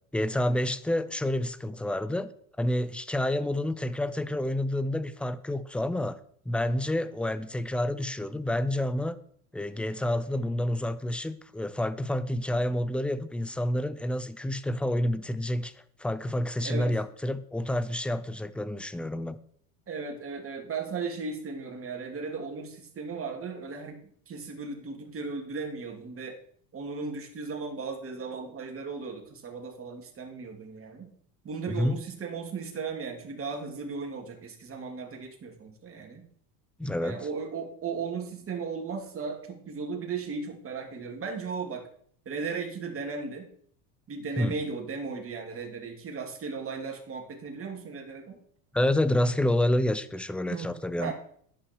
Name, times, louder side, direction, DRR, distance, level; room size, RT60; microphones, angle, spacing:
voice 1, 0.1-2.3 2.6-6.2 6.5-9.2 9.5-15.7 16.0-19.4 31.7-32.0 36.8-37.2 44.4-44.6 48.7-51.1, left 1 dB, 5° left, 0.4 m, -28 dB
voice 2, 19.9-26.4 26.7-31.1 31.4-36.3 37.0-41.9 42.2-43.5 44.1-48.4 50.5-50.7 51.0-51.1, right 4 dB, 30° right, 2.9 m, -36 dB
11.0 x 9.2 x 4.6 m
supercardioid pair, 120°, 45 cm